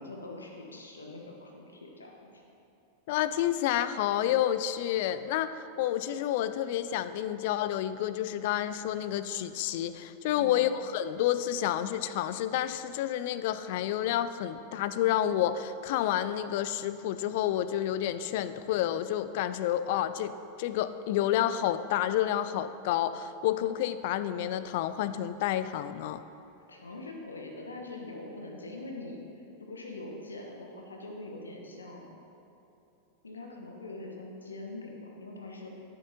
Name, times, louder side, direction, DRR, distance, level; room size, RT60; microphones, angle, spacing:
voice 1, 0.0-2.4 10.3-10.6 26.7-32.2 33.2-35.8, left 2 dB, 75° left, 1 dB, 1.1 m, -43 dB
voice 2, 3.1-20.3 20.6-26.2, left 11 dB, 50° left, 13 dB, 0.3 m, -29 dB
12.5 x 7.3 x 2.9 m, 2.9 s
figure-of-eight pair, 90°, 0 cm